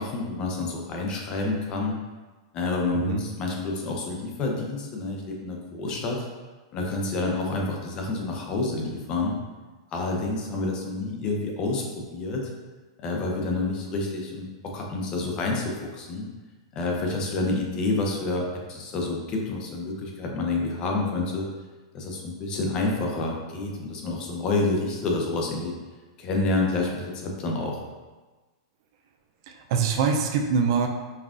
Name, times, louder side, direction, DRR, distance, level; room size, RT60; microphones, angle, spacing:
voice 1, 0.0-1.9 2.5-6.3 6.7-9.4 9.9-12.5 13.0-16.3 16.7-21.5 21.9-25.7 26.2-27.8, left 2 dB, 30° left, 0 dB, 0.6 m, -28 dB
voice 2, 29.5-30.9, right 6 dB, 55° right, 4 dB, 0.4 m, -24 dB
5.4 x 2.3 x 2.4 m, 1.3 s
supercardioid pair, 150°, 3 cm